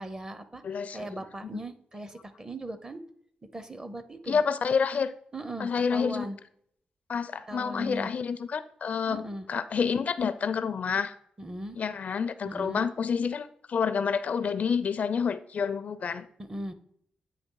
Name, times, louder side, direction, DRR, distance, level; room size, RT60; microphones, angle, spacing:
voice 1, 0.0-0.6 0.9-3.0 3.5-4.4 5.3-6.4 7.5-8.1 9.1-9.5 11.4-11.8 12.4-12.8 16.4-16.7, right 1 dB, 25° right, 10 dB, 0.7 m, -38 dB
voice 2, 0.6-1.2 1.5-1.6 4.3-5.1 5.6-6.2 7.1-11.1 11.8-16.3, left 6 dB, 60° left, 13 dB, 0.4 m, -29 dB
8.9 x 3.1 x 4.6 m, 0.66 s
cardioid pair, 80°, 3 cm